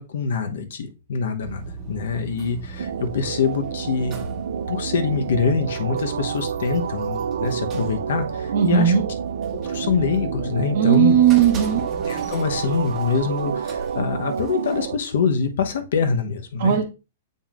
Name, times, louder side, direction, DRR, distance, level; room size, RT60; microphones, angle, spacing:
voice 1, 0.0-4.3 4.7-9.0 9.7-11.2 12.1-16.8, left 5 dB, 60° left, 7 dB, 0.9 m, -24 dB
sound 1, 1.4-14.8, right 4 dB, 15° right, 1.1 m, -36 dB
sound 2, 2.8-15.0, right 7 dB, 80° right, 0.4 m, -29 dB
voice 2, 8.5-9.0 10.7-11.9 16.6-16.8, right 9 dB, 45° right, -2 dB, 1.0 m, -17 dB
7.4 x 5.4 x 2.5 m, 0.30 s
hypercardioid pair, 180°, 0 cm